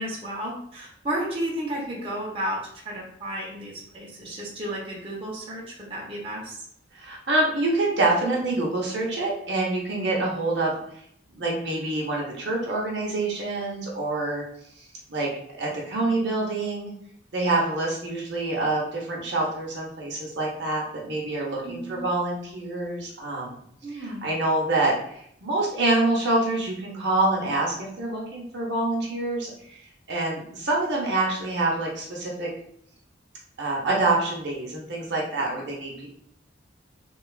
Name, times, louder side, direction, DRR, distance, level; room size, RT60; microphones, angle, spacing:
voice 1, 0.0-2.6 2.8-6.6 21.6-22.0 23.8-24.3, right 1 dB, 30° right, -4 dB, 0.6 m, -32 dB
voice 2, 6.9-10.8 11.3-14.4 14.8-16.9 17.3-23.6 23.9-29.8 30.1-32.5 33.6-36.2, right 2 dB, 65° right, -2 dB, 0.7 m, -26 dB
2.9 x 2.3 x 2.3 m, 0.68 s
head